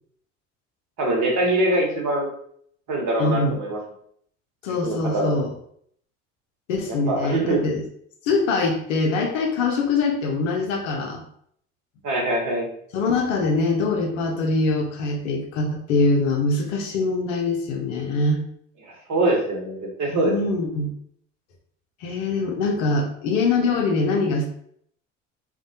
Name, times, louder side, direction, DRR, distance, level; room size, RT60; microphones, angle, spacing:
voice 1, 1.0-2.3 2.9-3.8 4.7-5.3 6.9-7.6 12.0-12.7 19.1-20.3, right 1 dB, 50° right, -1 dB, 1.0 m, -23 dB
voice 2, 3.2-3.6 4.6-5.5 6.7-7.8 8.2-11.2 12.9-18.4 20.1-20.9 22.0-24.5, left 3 dB, 80° left, 1 dB, 0.6 m, -23 dB
2.3 x 2.1 x 2.7 m, 0.66 s
hypercardioid pair, 65°, 38 cm